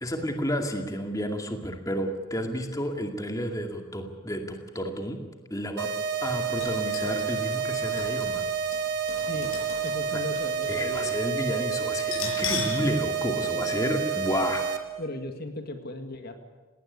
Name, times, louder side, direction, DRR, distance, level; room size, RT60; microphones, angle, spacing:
voice 1, 0.0-5.2 5.5-5.9 6.2-8.5 10.1-10.2 10.7-14.6, equal, 15° left, 4 dB, 2.3 m, -31 dB
sound 1, 5.8-14.8, right 6 dB, 55° right, 2.2 m, -29 dB
sound 2, 6.5-11.2 11.4-11.5 12.0-12.8 13.2-13.3 14.1-14.2 14.6-14.7, left 5 dB, 70° left, 7.8 m, -38 dB
voice 2, 9.8-11.1 13.5-14.6 15.0-16.3, left 1 dB, 45° left, 6 dB, 2.0 m, -37 dB
19.5 x 18.5 x 9.7 m, 1.2 s
head